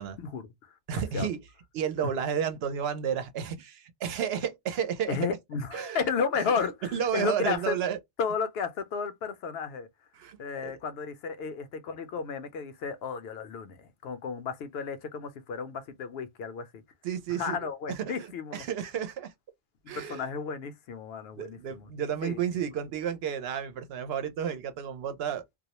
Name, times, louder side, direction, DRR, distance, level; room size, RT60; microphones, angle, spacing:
voice 1, 0.2-1.3 5.1-7.8 8.2-9.9 10.4-16.8 17.3-18.6 19.8-21.9 22.2-22.4, left 5 dB, 75° left, 0.8 m, -33 dB
voice 2, 0.9-1.4 1.7-5.2 5.7-6.0 6.9-8.0 10.2-10.7 11.5-11.6 17.0-19.3 19.9-20.3 21.3-25.4, right 8 dB, 75° right, 0.8 m, -32 dB
2.3 x 2.1 x 2.8 m
omnidirectional pair, 1.0 m